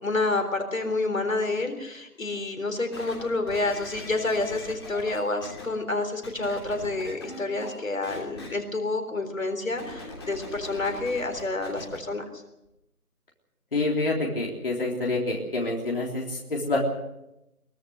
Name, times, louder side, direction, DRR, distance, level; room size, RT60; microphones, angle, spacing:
voice 1, 0.0-12.4, left 2 dB, 60° left, 6 dB, 3.8 m, -29 dB
sound 1, 2.9-5.6 6.2-7.8 8.0-8.5 9.7-12.0 12.6-12.7, left 2 dB, 15° left, 2.9 m, -41 dB
voice 2, 13.7-16.8, left 2 dB, 35° left, -1 dB, 3.6 m, -27 dB
23.0 x 18.5 x 6.6 m, 0.89 s
figure-of-eight pair, 170°, 46 cm